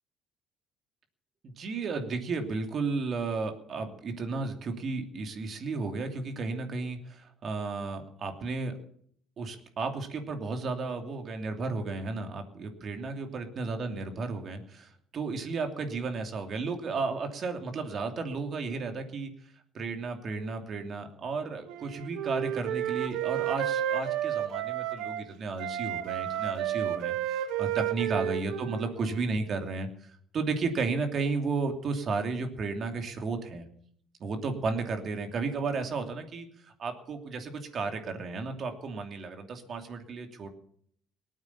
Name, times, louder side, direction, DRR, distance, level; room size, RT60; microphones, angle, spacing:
voice 1, 1.4-8.8 9.4-19.3 19.7-33.7 34.2-40.5, right 4 dB, 45° right, 5 dB, 2.8 m, -33 dB
Wind instrument woodwind instrument, 21.7-25.2 25.6-29.3, right 11 dB, 85° right, 1.2 m, -32 dB
19.0 x 9.1 x 7.2 m, 0.62 s
cardioid pair, 110°, 0 cm